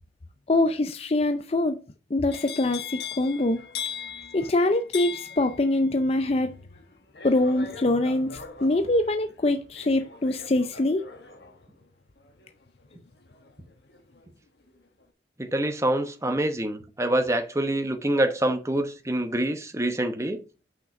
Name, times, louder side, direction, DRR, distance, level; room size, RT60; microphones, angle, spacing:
voice 1, 0.5-1.8 2.1-3.6 4.3-6.5 7.2-11.0, left 2 dB, 35° left, 0.5 m, -24 dB
sound 1, 2.3-14.3 14.6-15.0, left 7 dB, 65° left, 1.4 m, -41 dB
voice 2, 15.4-20.4, right 1 dB, 15° right, 1.0 m, -26 dB
6.0 x 5.9 x 5.3 m
head